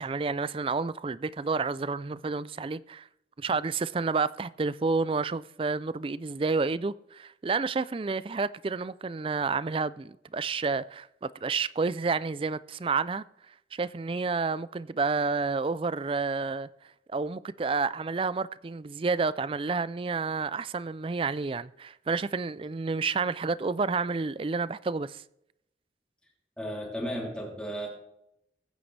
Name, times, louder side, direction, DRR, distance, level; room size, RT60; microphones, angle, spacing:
voice 1, 0.0-3.1 3.4-13.2 13.7-16.7 17.1-25.2, right 4 dB, 30° right, 0.4 m, -30 dB
voice 2, 26.6-27.9, equal, 5° left, 3.1 m, -34 dB
21.5 x 9.3 x 3.3 m
head